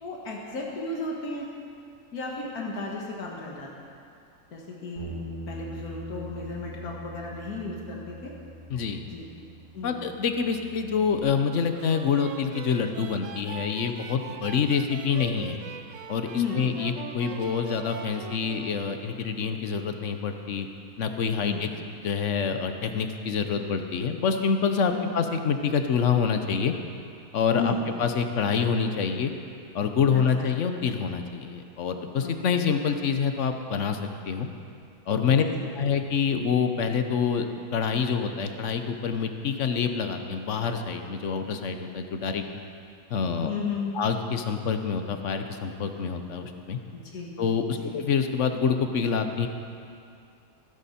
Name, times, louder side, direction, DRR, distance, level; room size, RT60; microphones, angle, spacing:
voice 1, 0.0-1.5 2.1-3.9 4.5-5.1 5.5-8.3 9.1-9.3 9.7-10.0 16.3-16.7 21.4-21.7 24.9-25.1 27.5-27.9 30.1-30.5 32.2-32.6 35.3-35.9 43.4-44.0 46.9-47.3 47.7-47.9, left 3 dB, 85° left, -3 dB, 2.1 m, -34 dB
Bass guitar, 5.0-11.2, equal, 50° right, 3.2 m, -42 dB
voice 2, 8.7-9.0 9.8-15.6 16.1-20.7 21.0-21.7 22.0-26.7 27.3-29.3 29.7-34.0 34.3-34.5 35.1-35.4 35.8-37.5 37.7-42.4 43.1-43.5 43.9-46.8 47.4-49.5, left 6 dB, 60° left, 6 dB, 1.1 m, -26 dB
sound 1, 11.8-19.0, right 6 dB, 65° right, 1.0 m, -42 dB
14.5 x 13.5 x 4.3 m, 2.5 s
omnidirectional pair, 1.6 m